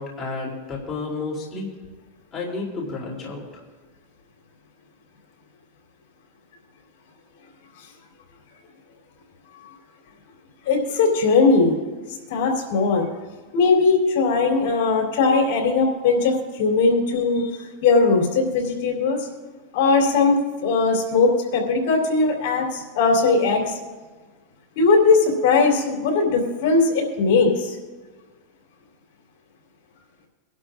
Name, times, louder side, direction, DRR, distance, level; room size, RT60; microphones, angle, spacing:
voice 1, 0.0-1.7 2.3-3.6, left 3 dB, 25° left, -3 dB, 3.0 m, -31 dB
voice 2, 10.7-11.8 12.3-13.1 13.5-19.3 19.7-23.8 24.8-27.8, left 4 dB, 70° left, 0 dB, 3.5 m, -19 dB
24.5 x 11.5 x 2.5 m, 1.3 s
supercardioid pair, 145°, 0 cm